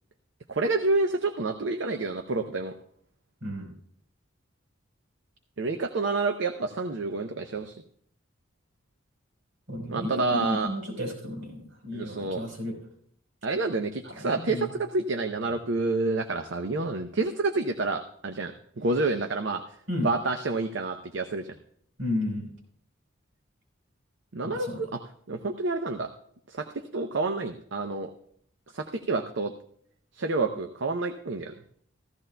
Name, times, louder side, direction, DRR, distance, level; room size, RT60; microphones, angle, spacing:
voice 1, 0.5-2.7 5.6-7.7 9.9-10.7 11.9-12.4 13.4-19.6 20.0-21.5 24.3-25.0 25.3-26.1 26.5-26.7 26.9-28.1 28.7-29.5 30.1-31.5, right 3 dB, 65° right, 6 dB, 0.6 m, -28 dB
voice 2, 9.7-12.8 14.2-14.7 19.9-20.1 22.0-22.5 24.4-24.8, left 1 dB, 80° right, -1 dB, 4.1 m, -33 dB
15.5 x 14.0 x 2.2 m, 0.64 s
head